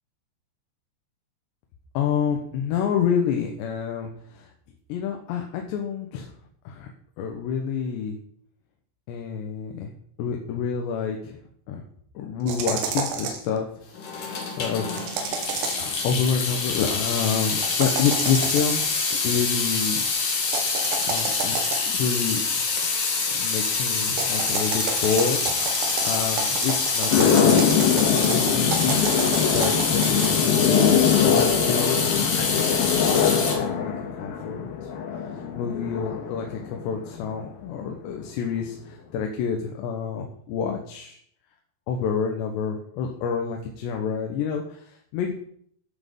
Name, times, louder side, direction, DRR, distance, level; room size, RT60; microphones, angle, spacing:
voice 1, 2.0-4.5 4.9-6.3 6.7-6.9 7.2-8.2 9.1-9.9 10.2-11.4 11.7-11.8 12.2-13.7 14.1-14.9 15.8-20.0 21.1-21.6 21.9-22.4 23.4-29.3 29.5-33.9 34.2-34.7 35.2-41.2 41.9-45.3, left 6 dB, 90° left, 2 dB, 3.3 m, -28 dB
sound 1, 12.5-13.5 14.9-15.9 17.6-18.9 20.4-22.0 24.1-30.3, right 5 dB, 90° right, 3.7 m, -30 dB
Water tap faucet / Sink (filling or washing) / Drip, 13.9-33.5, left 4 dB, 55° left, 3.2 m, -26 dB
sound 2, 27.1-37.5, left 7 dB, 70° left, 2.9 m, -23 dB
14.0 x 6.4 x 5.4 m, 0.63 s
omnidirectional pair, 4.9 m